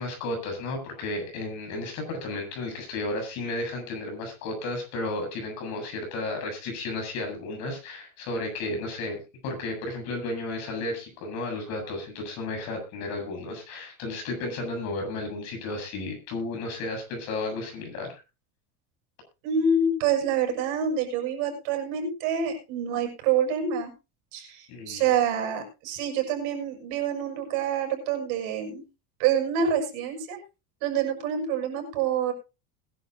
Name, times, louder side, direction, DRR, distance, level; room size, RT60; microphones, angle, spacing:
voice 1, 0.0-18.2 24.7-25.1, left 2 dB, 50° left, 3 dB, 7.9 m, -33 dB
voice 2, 19.4-23.9 24.3-28.8 29.2-30.4 30.8-32.3, right 6 dB, 65° right, 3 dB, 6.6 m, -27 dB
21.0 x 11.5 x 2.7 m, 0.29 s
cardioid pair, 180°, 35 cm